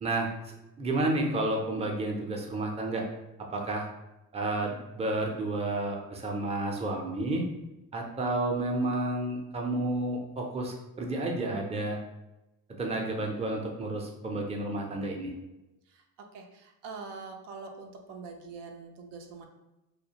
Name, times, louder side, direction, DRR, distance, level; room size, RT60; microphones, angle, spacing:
voice 1, 0.0-3.0 3.5-3.9 4.3-7.5 7.9-12.0 12.8-15.3, right 2 dB, 15° right, 0 dB, 0.4 m, -31 dB
voice 2, 16.2-19.5, right 4 dB, 85° right, 3 dB, 0.5 m, -44 dB
2.4 x 2.1 x 2.8 m, 0.98 s
cardioid pair, 80°, 41 cm